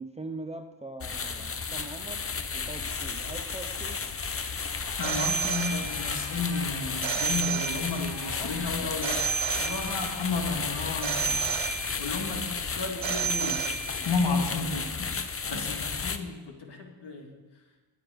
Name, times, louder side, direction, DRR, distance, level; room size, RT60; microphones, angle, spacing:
voice 1, 0.0-4.1 8.4-8.7 14.9-15.1, right 2 dB, 15° right, 5 dB, 0.5 m, -42 dB
sound 1, 1.0-16.2, left 5 dB, 30° left, 0.7 m, -33 dB
sound 2, 4.6-11.7, left 1 dB, 75° left, 4.3 m, -45 dB
voice 2, 5.0-9.2 9.6-13.6 14.0-15.1 15.5-17.3, left 4 dB, 55° left, 2 dB, 2.3 m, -32 dB
Telephone, 5.0-6.3 7.0-8.3 9.0-10.3 11.0-12.3 13.0-14.3, right 8 dB, 70° right, 0.8 m, -31 dB
19.5 x 9.2 x 5.2 m, 1.3 s
wide cardioid pair, 175°, 47 cm